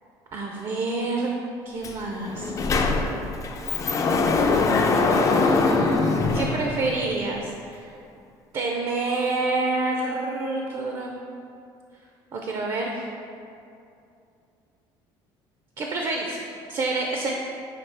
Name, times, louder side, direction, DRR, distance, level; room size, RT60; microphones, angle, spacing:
voice 1, 0.3-1.3 1.6-2.5 5.1-7.9 8.5-11.2 12.3-13.0 15.8-17.3, right 3 dB, 45° right, 0 dB, 0.5 m, -28 dB
Sliding door, 1.8-1.9 2.3-7.3, left 3 dB, 30° left, 0.3 m, -22 dB
5.8 x 2.7 x 3.3 m, 2.5 s
cardioid pair, 110°, 10 cm